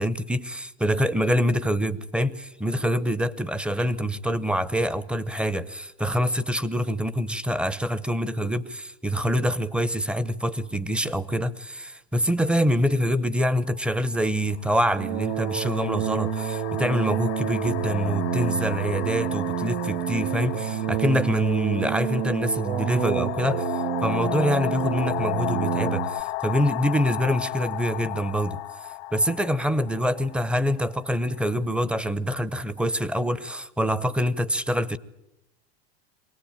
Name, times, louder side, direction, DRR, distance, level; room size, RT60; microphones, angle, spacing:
voice 1, 0.0-23.7 24.0-28.6 29.1-35.0, equal, 5° right, 0.7 m, -25 dB
sound 1, 13.6-13.8 14.7-31.4, left 18 dB, 65° left, 0.8 m, -34 dB
sound 2, 14.9-26.2, right 11 dB, 65° right, 0.8 m, -29 dB
24.0 x 18.0 x 8.9 m
supercardioid pair, 125°, 33 cm